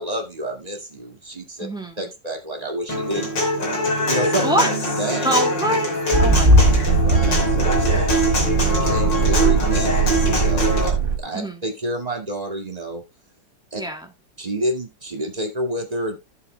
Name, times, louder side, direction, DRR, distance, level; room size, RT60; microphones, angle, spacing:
voice 1, 0.0-1.7 2.0-3.4 4.1-4.5 5.0-5.3 7.0-8.0 8.6-13.0 13.7-13.8 14.4-16.2, right 1 dB, 20° right, 2.0 m, -29 dB
voice 2, 1.6-2.0 4.4-4.7 5.2-5.9 6.2-6.9 11.3-11.6 13.7-14.1, right 1 dB, ahead, 2.0 m, -24 dB
Human voice / Acoustic guitar, 2.9-10.9, equal, 75° left, 3.8 m, -22 dB
sound 1, 6.1-11.2, right 2 dB, 35° right, 1.0 m, -19 dB
15.5 x 7.1 x 2.3 m
omnidirectional pair, 2.0 m